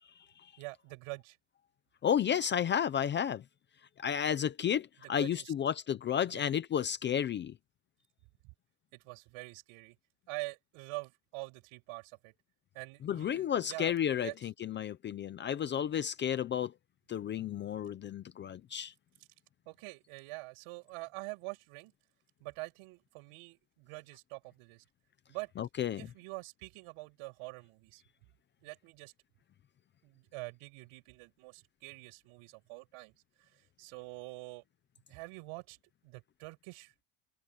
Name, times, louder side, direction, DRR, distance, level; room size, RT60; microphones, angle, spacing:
voice 1, 0.6-1.4 5.0-5.5 6.2-6.5 8.9-10.0 10.3-12.3 12.7-14.3 19.7-21.9 22.4-24.8 25.3-25.5 26.0-28.0 28.6-29.1 30.0-33.1 33.4-34.6 35.1-35.8 36.0-36.9, right 26 dB, 85° right, 7.8 m, -45 dB
voice 2, 2.0-3.4 4.0-7.5 13.0-16.7 17.1-18.9 25.6-26.1, left 9 dB, 25° left, 0.4 m, -32 dB
open air
cardioid pair, 180°, 49 cm